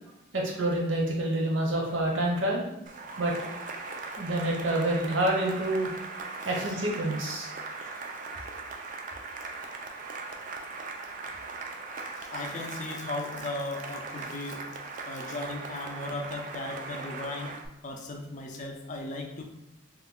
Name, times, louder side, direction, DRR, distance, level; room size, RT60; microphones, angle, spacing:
voice 1, 0.3-2.6 3.2-3.3 4.2-5.9 6.4-7.5, right 1 dB, 60° right, -1 dB, 0.8 m, -27 dB
Cheering / Applause, 2.9-17.7, right 4 dB, 40° right, 0.3 m, -39 dB
voice 2, 12.1-14.6 15.1-17.6 17.8-19.4, left 2 dB, 35° left, 3 dB, 0.4 m, -37 dB
3.0 x 2.2 x 3.7 m, 0.89 s
head